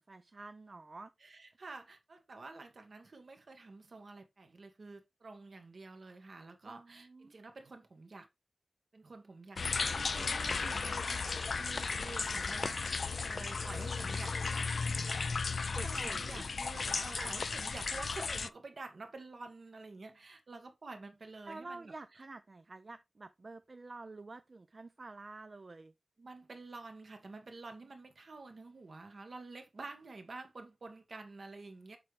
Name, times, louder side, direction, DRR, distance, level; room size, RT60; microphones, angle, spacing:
voice 1, 0.1-1.1 6.6-7.3 9.9-11.2 15.7-16.4 17.1-17.3 21.4-25.9, right 3 dB, 50° right, 0.4 m, -49 dB
voice 2, 1.2-8.3 8.9-9.9 10.2-11.0 11.6-15.0 15.7-22.2 26.2-32.0, right 3 dB, 65° right, 1.4 m, -49 dB
sound 1, 9.6-18.5, left 4 dB, 70° left, 0.3 m, -35 dB
6.9 x 4.8 x 3.2 m
wide cardioid pair, 80°, 0 cm